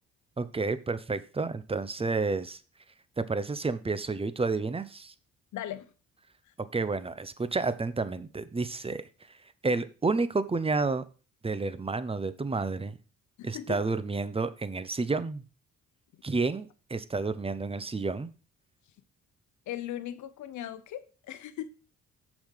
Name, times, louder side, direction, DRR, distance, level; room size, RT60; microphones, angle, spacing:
voice 1, 0.4-2.6 3.2-5.1 6.7-9.0 9.6-11.0 11.4-13.0 13.4-15.4 16.2-18.3, right 3 dB, 20° right, 0.7 m, -30 dB
voice 2, 5.5-5.9 13.4-13.8 19.7-21.7, left 12 dB, 75° left, 0.9 m, -38 dB
7.2 x 5.1 x 5.6 m
cardioid pair, 90°, 30 cm